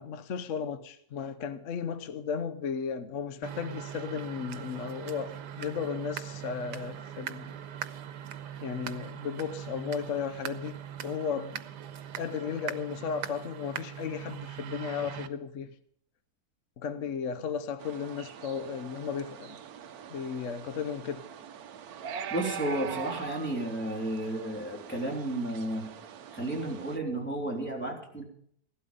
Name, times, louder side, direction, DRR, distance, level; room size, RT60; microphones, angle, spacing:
voice 1, 0.0-7.6 8.6-10.8 11.0-11.6 12.2-15.7 16.8-19.6 20.1-21.3, left 6 dB, 55° left, 1.0 m, -35 dB
sound 1, 3.4-15.3, right 9 dB, 85° right, 1.5 m, -41 dB
sound 2, 17.8-27.0, right 7 dB, 65° right, 1.2 m, -43 dB
voice 2, 22.3-25.9 26.3-28.2, right 1 dB, 5° left, 3.5 m, -32 dB
16.0 x 12.0 x 5.3 m
omnidirectional pair, 1.8 m